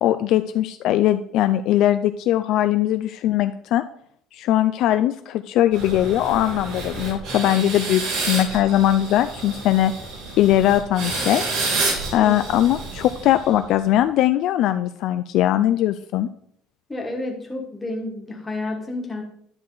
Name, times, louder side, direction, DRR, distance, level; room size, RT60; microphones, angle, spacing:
voice 1, 0.0-3.8 4.3-9.9 10.4-11.4 12.1-16.3, left 12 dB, 55° left, 10 dB, 0.4 m, -20 dB
sound 1, 5.7-13.7, right 3 dB, 60° right, 3.2 m, -29 dB
voice 2, 16.9-19.2, left 2 dB, 10° left, 1 dB, 1.5 m, -30 dB
10.5 x 6.5 x 3.9 m, 0.66 s
cardioid pair, 165°, 0 cm